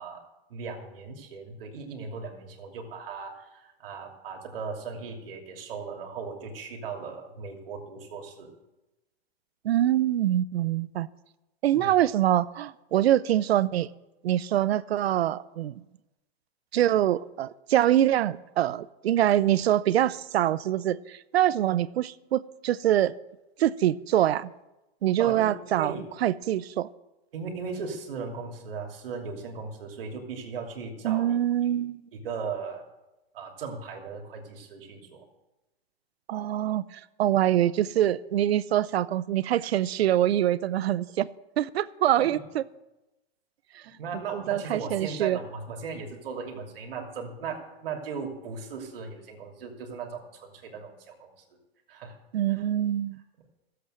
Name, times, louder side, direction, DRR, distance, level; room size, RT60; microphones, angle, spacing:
voice 1, 0.0-8.5 11.7-11.9 25.2-26.0 27.3-31.4 32.1-32.8 33.3-35.3 42.2-42.4 43.8-51.3 51.9-52.2 52.5-52.6, right 5 dB, 65° right, 2.9 m, -37 dB
voice 2, 9.6-11.1 11.6-13.9 14.2-15.8 16.7-23.1 23.6-24.5 25.0-25.9 26.2-26.9 31.0-32.0 36.3-41.3 41.6-42.6 43.7-43.8 44.3-45.4 52.3-53.2, right 12 dB, 90° right, 0.6 m, -24 dB
14.0 x 8.0 x 7.8 m
supercardioid pair, 175°, 30 cm